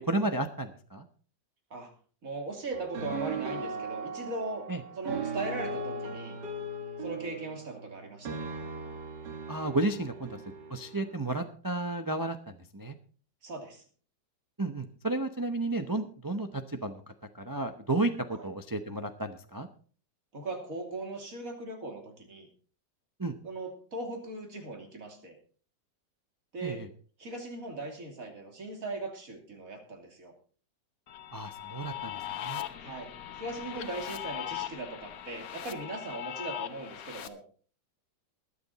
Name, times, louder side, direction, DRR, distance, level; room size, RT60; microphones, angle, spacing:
voice 1, 0.1-1.0 4.7-4.8 9.5-10.4 10.7-12.9 14.6-17.0 17.4-19.7 23.2-23.3 26.6-26.9 31.3-32.6, right 2 dB, 25° right, 7 dB, 0.4 m, -32 dB
voice 2, 2.2-4.6 4.9-6.4 7.0-8.5 13.4-13.8 18.3-18.4 20.3-22.5 23.4-25.4 26.5-26.8 27.2-30.3 32.8-37.4, right 2 dB, 50° right, 3 dB, 3.2 m, -39 dB
sound 1, 2.7-11.3, right 3 dB, 65° right, 2.4 m, -38 dB
sound 2, 31.1-37.3, left 11 dB, 55° left, 1.3 m, -39 dB
21.0 x 7.8 x 4.1 m, 0.42 s
omnidirectional pair, 1.9 m